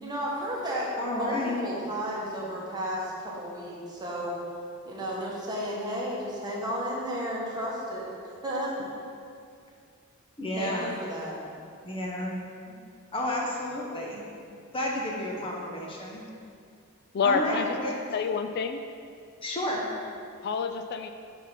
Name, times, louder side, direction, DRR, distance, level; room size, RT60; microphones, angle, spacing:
voice 1, 0.0-4.3 4.8-8.0 8.4-8.7 10.6-11.4, equal, 20° right, -5 dB, 1.2 m, -33 dB
voice 2, 1.0-1.6 10.4-10.9 11.8-12.7 13.1-14.2 14.7-16.2 17.2-17.9 19.4-19.9, left 1 dB, 25° left, -2 dB, 0.9 m, -31 dB
voice 3, 17.1-17.8 18.1-18.8 20.4-21.1, left 5 dB, 50° left, 7 dB, 0.3 m, -27 dB
7.4 x 3.5 x 5.8 m, 2.3 s
head